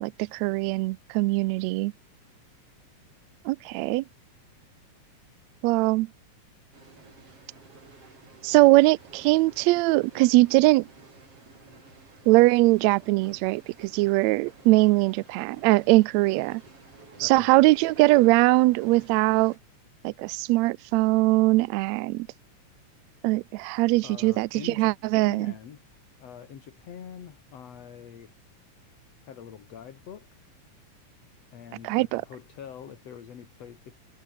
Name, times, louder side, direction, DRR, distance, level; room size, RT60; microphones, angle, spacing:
voice 1, 0.0-1.9 3.5-4.0 5.6-6.1 8.4-10.9 12.3-16.6 17.2-19.5 20.0-22.3 23.2-25.5 31.8-32.2, right 20 dB, 80° right, 1.7 m, -21 dB
sound 1, 6.7-19.6, right 4 dB, 50° right, 6.1 m, -51 dB
voice 2, 17.2-17.5 24.0-24.9 25.2-28.4 29.2-30.5 31.5-34.0, left 8 dB, 55° left, 3.1 m, -45 dB
omnidirectional pair, 3.5 m